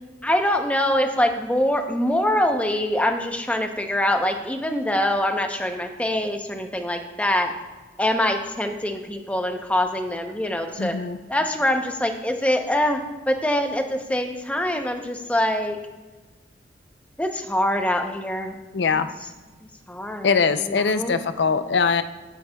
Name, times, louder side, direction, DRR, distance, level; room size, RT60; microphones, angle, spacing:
voice 1, 0.2-7.5 8.0-10.9 11.3-13.0 13.3-15.8 17.2-18.6 18.9-19.0 19.9-21.2, left 1 dB, 10° left, 4 dB, 0.7 m, -24 dB
voice 2, 10.8-11.2 18.7-19.1 20.2-22.0, left 5 dB, 75° left, 11 dB, 0.5 m, -22 dB
15.5 x 8.1 x 2.3 m, 1.2 s
head